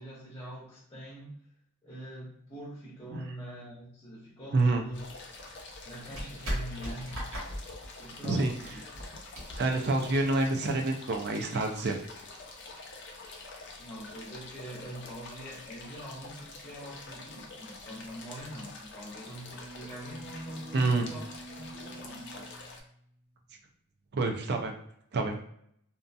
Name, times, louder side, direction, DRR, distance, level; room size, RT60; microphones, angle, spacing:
voice 1, 0.0-1.4 1.8-5.0 5.8-7.3 7.9-9.3 13.8-22.5, right 1 dB, 20° left, -7 dB, 0.7 m, -44 dB
voice 2, 4.5-4.8 8.2-8.5 9.6-12.0 20.7-21.1 24.1-24.7 25.1-25.4, right 2 dB, 50° right, 3 dB, 0.5 m, -27 dB
sound 1, 4.6-10.6, equal, 65° right, 1.3 m, -39 dB
sound 2, 4.9-22.8, left 3 dB, 55° left, 0.5 m, -47 dB
Bowed string instrument, 19.1-23.4, right 2 dB, 25° right, 1.2 m, -49 dB
2.6 x 2.5 x 2.3 m, 0.67 s
head